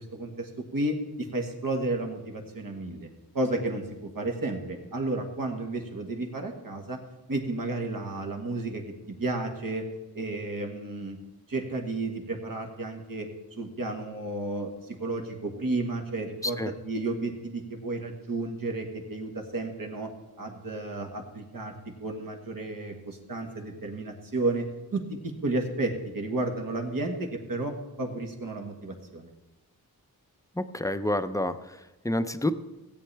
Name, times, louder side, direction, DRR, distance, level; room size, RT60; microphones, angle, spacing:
voice 1, 0.0-3.1 3.3-3.9 4.1-7.0 7.3-8.8 9.2-9.8 10.1-11.2 11.5-13.3 13.6-20.1 20.4-24.6 24.9-27.7 28.0-29.3, right 2 dB, 65° right, 3 dB, 1.6 m, -32 dB
voice 2, 30.6-32.6, left 1 dB, 10° left, 11 dB, 0.5 m, -29 dB
16.5 x 8.7 x 3.4 m, 1.0 s
wide cardioid pair, 85°, 36 cm